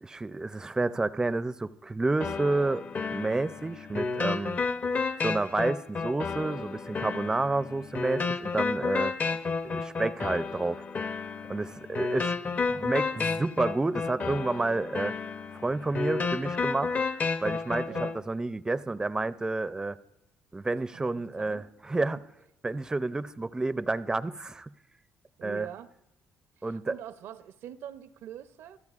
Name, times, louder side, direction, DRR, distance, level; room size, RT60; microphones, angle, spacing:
voice 1, 0.0-2.8 3.1-4.6 5.2-9.1 9.6-10.9 11.5-15.1 15.5-17.0 17.4-20.0 20.5-22.2 22.6-24.7 25.4-25.7 26.6-26.9, right 2 dB, 15° right, 0.4 m, -30 dB
sound 1, 2.2-18.2, left 4 dB, 40° left, 0.7 m, -31 dB
voice 2, 12.7-13.2 17.8-18.2 20.9-21.7 25.4-25.9 26.6-28.8, right 10 dB, 75° right, 0.6 m, -44 dB
26.5 x 13.5 x 2.4 m
cardioid pair, 90°, 4 cm